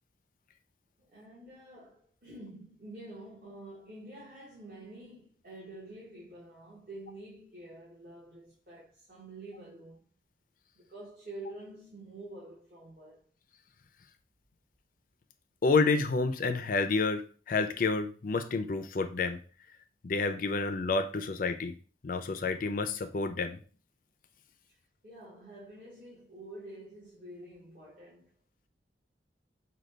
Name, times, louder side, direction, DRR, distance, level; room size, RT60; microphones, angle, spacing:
voice 1, 1.0-10.0 10.7-13.2 24.7-24.8 25.0-28.3, right 1 dB, 45° right, 1.3 m, -48 dB
voice 2, 15.6-19.4 20.0-21.7 22.0-23.6, left 4 dB, 50° left, 0.4 m, -29 dB
5.1 x 2.3 x 3.2 m
head